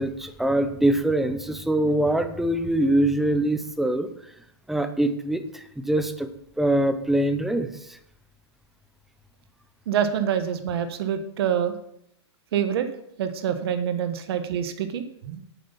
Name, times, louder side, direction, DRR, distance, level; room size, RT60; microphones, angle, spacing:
voice 1, 0.0-4.1 4.7-6.3 6.6-8.0, right 1 dB, ahead, 9 dB, 0.6 m, -23 dB
voice 2, 9.9-11.7 12.5-12.9 13.2-15.4, right 9 dB, 60° right, 9 dB, 1.3 m, -26 dB
8.6 x 7.7 x 5.4 m, 0.73 s
hypercardioid pair, 150°, 15 cm